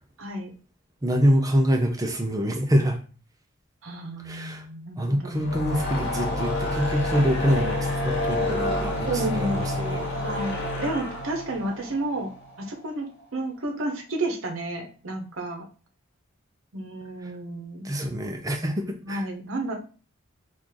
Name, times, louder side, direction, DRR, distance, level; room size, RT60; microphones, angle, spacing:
voice 1, 0.2-0.5 3.8-5.4 9.1-9.6 10.2-12.3 12.6-13.1 13.3-15.7 16.7-17.9 19.0-19.7, right 2 dB, 75° right, 3 dB, 0.8 m, -31 dB
voice 2, 1.0-3.0 4.2-4.6 5.0-10.0 17.8-19.2, equal, 15° right, 3 dB, 0.5 m, -25 dB
sound 1, 5.3-12.7, left 1 dB, 50° left, 0.9 m, -28 dB
3.0 x 2.5 x 3.7 m, 0.37 s
head